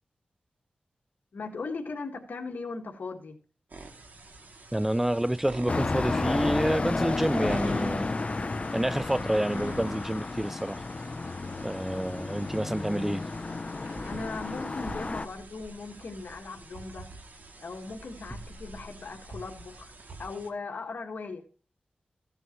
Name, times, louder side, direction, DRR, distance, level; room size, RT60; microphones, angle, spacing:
voice 1, 1.3-3.4 14.0-17.1 17.6-19.9 20.2-21.4, left 4 dB, 75° left, 1.7 m, -38 dB
sound 1, 3.7-20.5, right 2 dB, 70° right, 2.4 m, -47 dB
voice 2, 4.7-8.1 8.7-10.8 11.6-13.2, right 1 dB, 10° right, 0.5 m, -28 dB
sound 2, 5.7-15.3, left 3 dB, 40° left, 0.5 m, -32 dB
15.0 x 8.0 x 3.0 m
cardioid pair, 65°, 3 cm